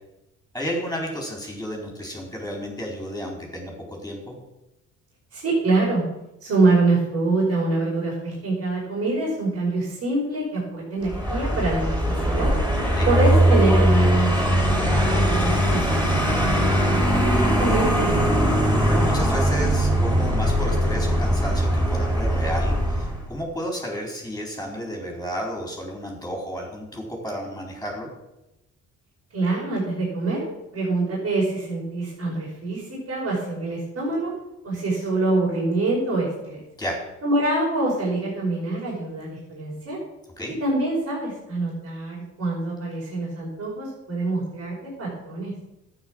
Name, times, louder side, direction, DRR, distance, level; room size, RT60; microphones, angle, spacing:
voice 1, 0.5-4.3 12.9-13.1 18.9-28.1 36.8-37.0 40.4-40.5, equal, 5° left, -1 dB, 4.1 m, -32 dB
voice 2, 5.3-6.1 6.4-12.5 13.0-14.6 14.9-18.6 29.3-30.5 30.7-34.3 34.6-36.6 37.2-40.0 40.6-45.5, right 2 dB, 55° right, -6 dB, 5.7 m, -25 dB
Vehicle, 11.0-23.3, equal, 15° right, 5.6 m, -20 dB
12.0 x 9.2 x 6.3 m, 0.92 s
cardioid pair, 90°, 30 cm